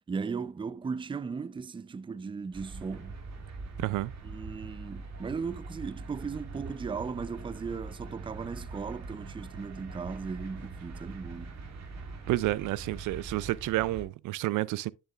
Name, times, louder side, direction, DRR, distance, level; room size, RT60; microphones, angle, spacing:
voice 1, 0.1-3.1 4.2-11.5, right 5 dB, 15° right, 0.4 m, -37 dB
sound 1, 2.5-14.0, right 3 dB, 60° right, 2.4 m, -43 dB
voice 2, 3.8-4.1 12.3-14.9, right 17 dB, 80° right, 0.4 m, -30 dB
10.5 x 6.8 x 2.4 m
cardioid pair, 90°, 30 cm